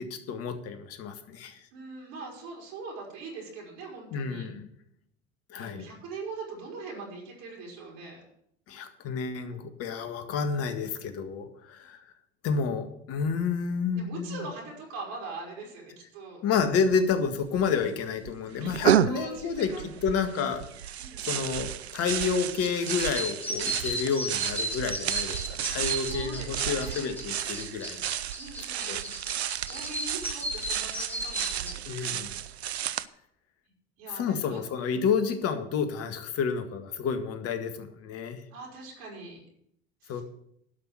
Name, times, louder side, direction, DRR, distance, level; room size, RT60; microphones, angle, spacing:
voice 1, 0.0-1.6 4.1-4.7 5.5-5.9 8.7-12.0 12.4-14.5 16.4-19.7 20.0-20.6 21.3-28.0 28.9-29.0 31.9-32.3 34.1-38.4 40.1-40.2, left 6 dB, 50° left, 8 dB, 1.8 m, -30 dB
voice 2, 1.7-4.5 5.5-8.2 13.9-16.4 18.5-19.9 21.0-21.5 26.0-27.1 28.4-29.1 29.7-32.2 34.0-34.8 38.5-39.4 40.0-40.2, right 3 dB, 60° right, -3 dB, 4.8 m, -42 dB
sound 1, 16.9-17.0 17.2-17.9 18.2-33.0, right 10 dB, 85° right, 0.5 m, -32 dB
sound 2, 22.5-31.7, equal, 5° left, 2.9 m, -36 dB
12.0 x 6.1 x 7.8 m, 0.72 s
hypercardioid pair, 70°, 31 cm